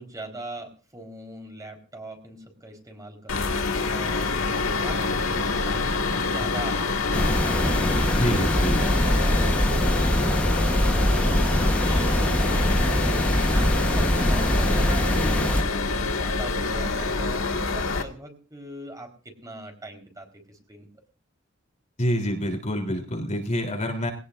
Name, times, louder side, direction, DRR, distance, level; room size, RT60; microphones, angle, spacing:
voice 1, 0.0-4.3 4.8-6.8 7.3-12.9 13.5-20.9, right 1 dB, 15° right, 2 dB, 4.3 m, -41 dB
sound 1, 3.3-18.0, left 3 dB, 70° left, 2.0 m, -26 dB
sound 2, 7.1-15.6, equal, 5° left, 1.2 m, -23 dB
voice 2, 8.2-8.8 22.0-24.1, equal, 35° left, 3 dB, 3.5 m, -27 dB
22.0 x 18.0 x 2.6 m, 0.35 s
head